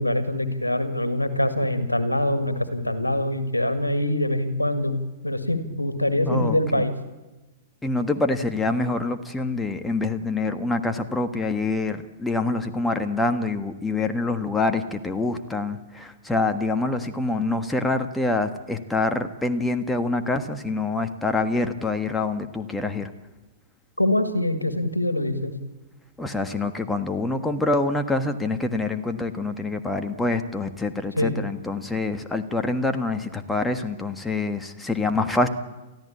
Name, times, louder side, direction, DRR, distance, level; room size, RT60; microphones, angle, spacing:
voice 1, 0.0-6.9 24.0-25.5 31.2-31.4, left 1 dB, 85° left, 9 dB, 1.9 m, -24 dB
voice 2, 6.3-6.8 7.8-23.1 26.2-35.5, left 2 dB, 5° left, 7 dB, 1.5 m, -26 dB
29.0 x 14.5 x 8.6 m, 1.1 s
figure-of-eight pair, 100°, 0 cm